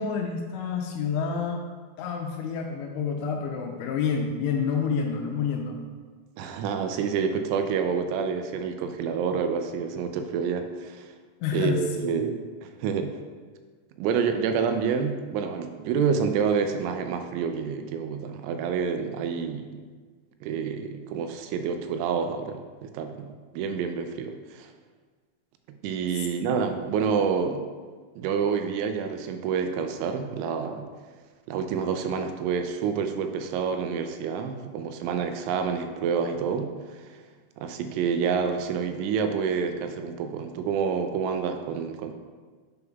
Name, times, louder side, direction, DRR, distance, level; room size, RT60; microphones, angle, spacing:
voice 1, 0.0-1.6 2.0-5.8 11.4-12.2 26.1-26.3, left 6 dB, 85° left, 1 dB, 2.6 m, -28 dB
voice 2, 6.4-11.1 11.5-13.2 14.0-19.7 20.4-24.7 25.8-27.6 28.2-30.9 31.5-37.2 37.6-42.1, right 6 dB, 85° right, 7 dB, 2.9 m, -28 dB
9.5 x 5.3 x 2.3 m, 1.5 s
omnidirectional pair, 5.5 m